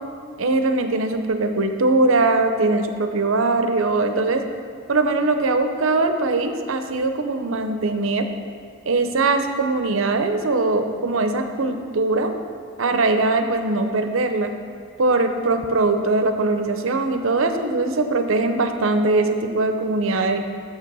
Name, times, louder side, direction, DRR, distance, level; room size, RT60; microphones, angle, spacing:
voice 1, 0.4-4.4 4.9-8.3 8.9-12.3 12.8-14.5 15.0-20.4, right 3 dB, 70° right, 7 dB, 0.7 m, -21 dB
8.1 x 6.8 x 5.4 m, 2.2 s
head